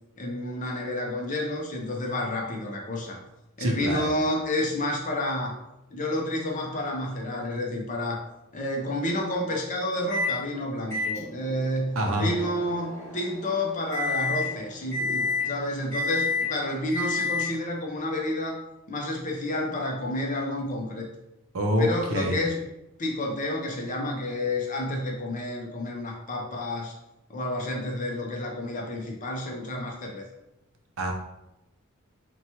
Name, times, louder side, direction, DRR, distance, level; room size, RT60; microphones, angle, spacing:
voice 1, 0.2-3.2 3.6-5.6 5.9-8.2 8.5-18.6 18.9-21.1 21.8-22.7 23.0-26.9 27.3-30.3, left 1 dB, 35° left, 0 dB, 0.5 m, -30 dB
voice 2, 3.6-4.1 12.0-12.3 21.5-22.4 31.0-31.1, equal, 70° right, 2 dB, 0.5 m, -26 dB
Microwave oven, 10.1-10.4 10.9-17.7, left 3 dB, 15° left, 1.1 m, -31 dB
2.8 x 2.2 x 2.8 m, 0.92 s
head